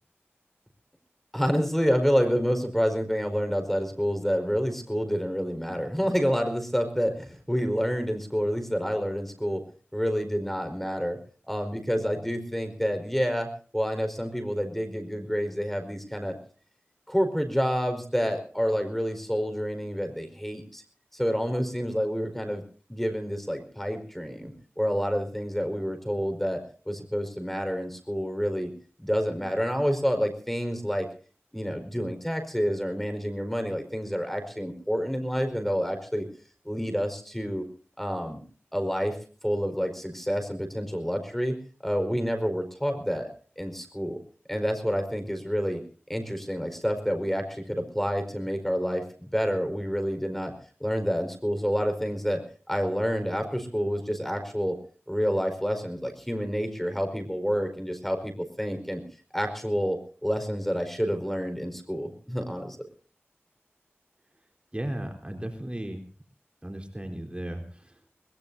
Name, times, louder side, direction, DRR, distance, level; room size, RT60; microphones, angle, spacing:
voice 1, 1.3-9.6 9.9-11.2 11.5-16.4 17.1-20.8 21.1-22.6 22.9-26.6 26.9-28.7 29.0-31.1 31.5-36.2 36.6-37.6 38.0-38.4 38.7-39.2 39.4-41.6 41.8-43.3 43.6-44.2 44.5-45.8 46.1-50.5 50.8-52.4 52.7-54.7 55.1-59.0 59.3-62.8, equal, 5° left, 7 dB, 4.8 m, -28 dB
voice 2, 64.7-66.0 66.6-67.9, right 1 dB, 25° right, 4 dB, 4.1 m, -35 dB
22.5 x 21.5 x 2.7 m, 0.41 s
wide cardioid pair, 40°, 5 cm